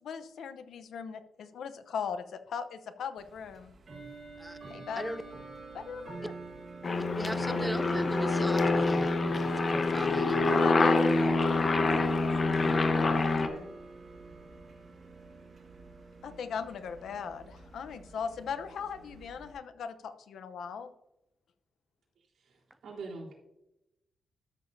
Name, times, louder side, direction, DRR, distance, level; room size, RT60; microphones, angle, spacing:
voice 1, 0.0-3.7 4.7-5.2 5.7-6.3 10.5-13.8 16.2-20.9, left 6 dB, 90° left, 10 dB, 0.8 m, -39 dB
Bell / Tick-tock, 3.2-19.5, right 3 dB, 45° right, 1.6 m, -47 dB
Aircraft, 6.8-13.5, left 3 dB, 40° left, 1.0 m, -26 dB
voice 2, 7.2-9.1 9.7-10.5, right 1 dB, 5° right, 11 dB, 0.6 m, -37 dB
voice 3, 22.4-23.3, right 3 dB, 80° right, -2 dB, 3.8 m, -44 dB
13.0 x 7.1 x 2.7 m, 0.86 s
wide cardioid pair, 135°, 0 cm